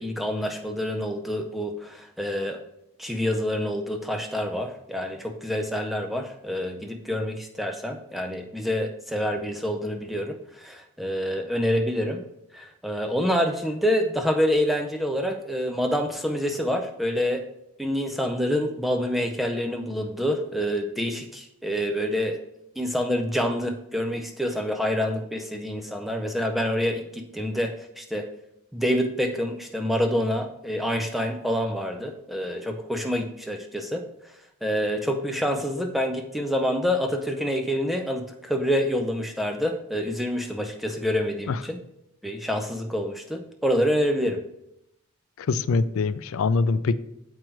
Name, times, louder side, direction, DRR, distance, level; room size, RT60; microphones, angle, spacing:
voice 1, 0.0-2.6 3.0-12.2 12.5-17.4 17.8-22.4 22.8-28.3 28.7-34.0 34.6-41.8 42.2-44.4, equal, ahead, 4 dB, 0.4 m, -27 dB
voice 2, 45.4-47.0, left 4 dB, 65° left, 15 dB, 0.4 m, -24 dB
7.5 x 4.7 x 4.5 m, 0.83 s
head